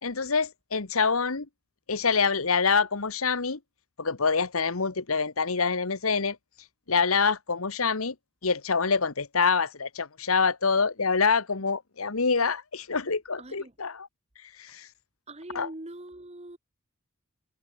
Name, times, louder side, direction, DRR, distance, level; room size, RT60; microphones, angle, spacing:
voice 1, 0.0-1.5 1.9-3.6 4.0-6.4 6.9-8.1 8.4-14.1 14.6-14.9 15.5-15.7, left 5 dB, 90° left, 1.5 m, -26 dB
voice 2, 13.4-13.7 15.3-16.6, right 1 dB, 30° right, 1.7 m, -42 dB
head